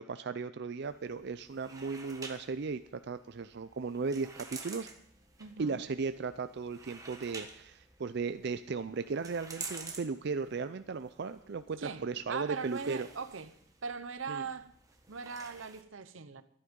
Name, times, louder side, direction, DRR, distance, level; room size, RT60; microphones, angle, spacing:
voice 1, 0.0-2.8 3.1-4.9 5.6-13.1 14.3-14.4, right 4 dB, 60° right, 0.5 m, -36 dB
sound 1, 0.8-15.8, right 4 dB, 20° right, 1.4 m, -50 dB
voice 2, 5.4-5.9 11.8-13.5 13.8-14.7 15.1-16.4, right 5 dB, 85° right, 0.9 m, -40 dB
13.5 x 11.5 x 5.2 m
head